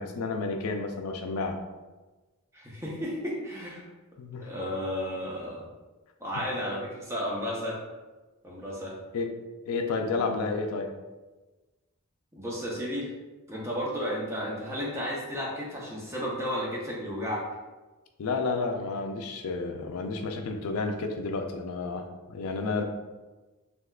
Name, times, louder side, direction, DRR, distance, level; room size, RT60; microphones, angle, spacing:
voice 1, 0.0-1.6 4.2-4.5 9.1-9.3 9.7-10.9 18.2-22.8, left 3 dB, 75° left, 4 dB, 0.4 m, -31 dB
voice 2, 2.5-3.8 4.4-5.7 6.2-7.8 8.4-9.0 12.3-13.1 13.5-17.5 22.7-22.8, equal, 10° right, -4 dB, 0.6 m, -33 dB
3.4 x 2.8 x 2.3 m, 1.2 s
head